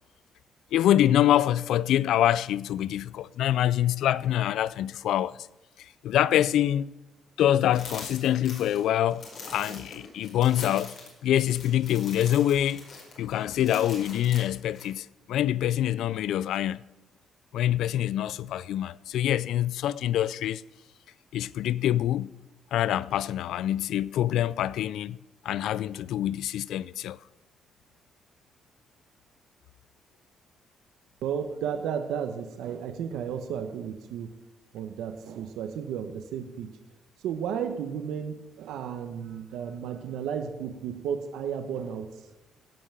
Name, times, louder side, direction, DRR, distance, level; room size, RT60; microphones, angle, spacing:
voice 1, 0.7-5.4 6.0-6.9 7.4-10.9 11.2-12.8 13.2-16.8 17.5-20.6 21.3-22.3 22.7-25.2 25.4-27.2, left 12 dB, 80° left, 0.3 m, -25 dB
sound 1, 7.7-14.9, left 3 dB, 60° left, 5.0 m, -43 dB
voice 2, 31.2-34.3 34.7-36.7 37.2-42.1, right 8 dB, 85° right, 1.0 m, -33 dB
16.0 x 5.6 x 7.4 m
cardioid pair, 90°, 0 cm